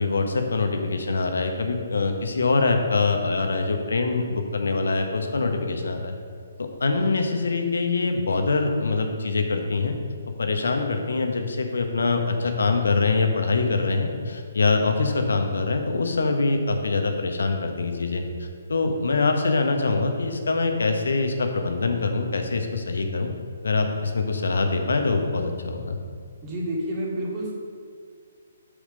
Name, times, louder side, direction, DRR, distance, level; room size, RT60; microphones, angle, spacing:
voice 1, 0.0-6.1 6.8-10.0 10.4-23.3 23.6-26.0, left 3 dB, 70° left, 5 dB, 1.1 m, -24 dB
voice 2, 26.4-27.5, right 1 dB, 25° right, -5 dB, 2.3 m, -29 dB
8.8 x 5.0 x 5.1 m, 2.1 s
figure-of-eight pair, 135°, 0 cm